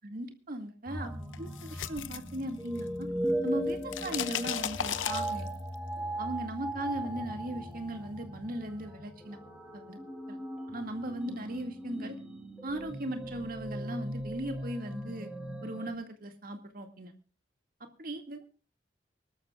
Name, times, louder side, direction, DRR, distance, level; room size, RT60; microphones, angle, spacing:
voice 1, 0.0-1.1 1.4-3.1 3.4-5.5 6.2-9.4 9.7-10.0 10.3-10.4 10.7-12.2 12.6-15.3 15.6-17.1 18.0-18.5, right 1 dB, 45° right, 6 dB, 2.2 m, -38 dB
sound 1, 0.9-15.9, right 1 dB, 5° right, 2.3 m, -38 dB
sound 2, 1.3-3.0 3.3-5.7, left 9 dB, 85° left, 0.7 m, -36 dB
24.0 x 13.0 x 2.4 m, 0.36 s
head